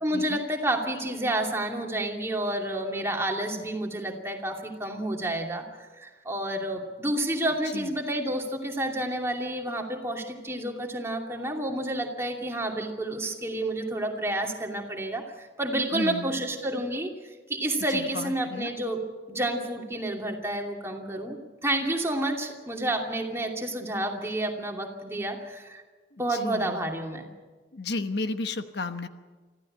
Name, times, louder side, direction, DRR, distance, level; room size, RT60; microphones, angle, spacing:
voice 1, 0.0-5.6 6.0-25.8 26.2-27.3, right 1 dB, 15° right, 1 dB, 2.7 m, -30 dB
voice 2, 15.9-16.4 17.9-18.7 26.1-26.8 27.7-29.1, left 3 dB, 65° left, 8 dB, 1.1 m, -33 dB
25.0 x 15.0 x 8.7 m, 1.3 s
head